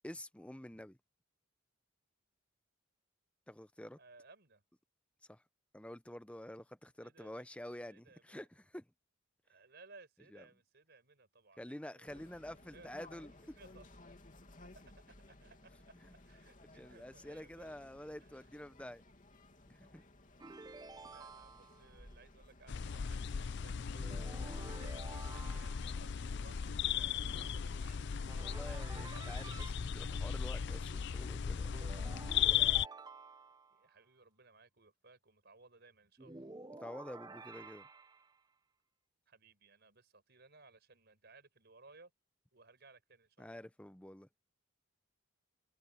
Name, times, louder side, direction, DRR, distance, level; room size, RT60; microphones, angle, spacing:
voice 1, 0.0-1.0 3.5-4.0 5.3-5.4 5.7-8.8 10.3-10.4 11.6-13.3 16.8-19.0 19.7-20.0 28.4-31.8 36.8-37.9 43.4-44.3, left 1 dB, 5° left, 0.8 m, -49 dB
voice 2, 4.0-4.6 7.0-7.6 7.9-8.4 9.4-13.2 13.6-14.2 14.7-15.9 16.2-17.9 18.2-18.5 21.0-28.1 28.5-29.7 33.7-36.5 39.3-42.1 42.5-43.6, right 3 dB, 55° right, 5.3 m, -62 dB
sound 1, 12.1-28.4, left 1 dB, 40° left, 2.8 m, -59 dB
sound 2, 20.4-22.0 23.9-26.0 28.3-29.7 31.7-33.8 36.2-38.3, right 3 dB, 20° right, 0.9 m, -51 dB
sound 3, 22.7-32.9, left 8 dB, 60° left, 0.5 m, -36 dB
head